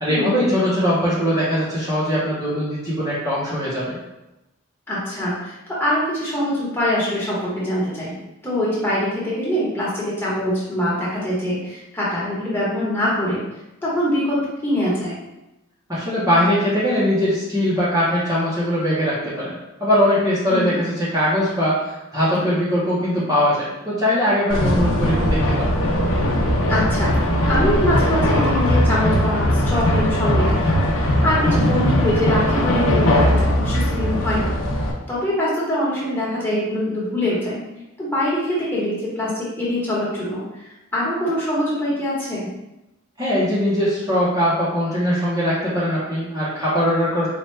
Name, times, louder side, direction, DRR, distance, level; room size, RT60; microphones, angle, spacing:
voice 1, 0.0-4.0 15.9-19.5 19.8-25.8 43.2-47.3, equal, 15° right, -9 dB, 0.8 m, -21 dB
voice 2, 4.9-8.1 8.4-13.4 13.8-15.2 20.5-20.7 26.7-27.1 27.5-30.8 31.2-34.6 35.1-37.6 38.0-42.5, left 1 dB, 10° left, -8 dB, 1.1 m, -23 dB
sound 1, 24.5-34.9, equal, 70° left, 0.7 m, -19 dB
4.3 x 2.4 x 3.2 m, 0.95 s
head